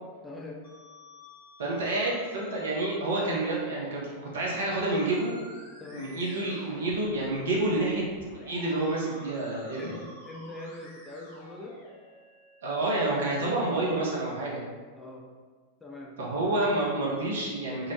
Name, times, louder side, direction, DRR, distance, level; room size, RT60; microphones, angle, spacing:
voice 1, 0.2-0.6 5.8-6.2 9.8-10.0 10.3-11.8 15.0-15.3 15.8-16.2, left 2 dB, 10° left, -2 dB, 0.4 m, -42 dB
Musical instrument, 0.6-12.6, left 1 dB, 55° left, 1.2 m, -50 dB
voice 2, 1.6-5.3 5.9-8.0 8.5-10.0 12.6-14.7 16.2-17.9, right 2 dB, 65° right, -4 dB, 0.7 m, -29 dB
2.8 x 2.1 x 2.7 m, 1.4 s
figure-of-eight pair, 90°, 0 cm